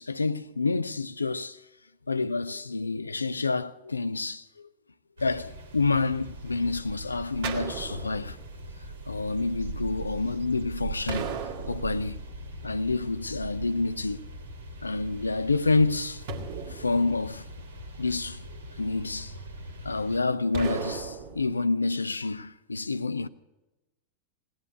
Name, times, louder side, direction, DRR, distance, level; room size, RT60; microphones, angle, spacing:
voice 1, 0.0-1.6 2.1-4.4 5.2-8.4 9.1-11.4 11.7-12.2 12.6-14.3 14.8-16.2 16.7-17.4 18.0-18.4 18.8-19.3 19.8-23.3, left 3 dB, 80° left, 0.5 m, -28 dB
sound 1, 5.2-20.2, right 2 dB, 75° right, 1.8 m, -41 dB
sound 2, 7.4-8.6 11.1-12.4 16.3-17.7 20.5-21.5, right 5 dB, 50° right, 1.6 m, -36 dB
17.5 x 10.5 x 7.9 m
figure-of-eight pair, 90°, 0 cm